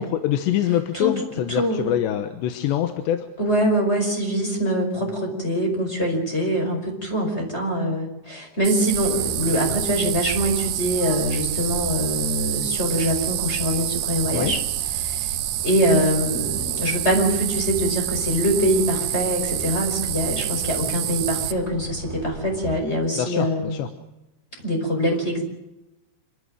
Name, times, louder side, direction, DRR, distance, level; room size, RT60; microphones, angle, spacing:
voice 1, 0.0-3.3 14.3-14.5 23.1-23.9, left 11 dB, 75° left, 8 dB, 3.1 m, -24 dB
voice 2, 1.5-1.9 3.4-14.6 14.9-15.4 15.6-23.8 24.6-25.4, equal, 15° left, 2 dB, 5.0 m, -24 dB
sound 1, 8.6-21.5, right 15 dB, 75° right, 3.2 m, -28 dB
sound 2, 8.9-22.7, right 2 dB, 55° right, 3.8 m, -36 dB
27.5 x 13.0 x 9.0 m, 0.94 s
omnidirectional pair, 5.6 m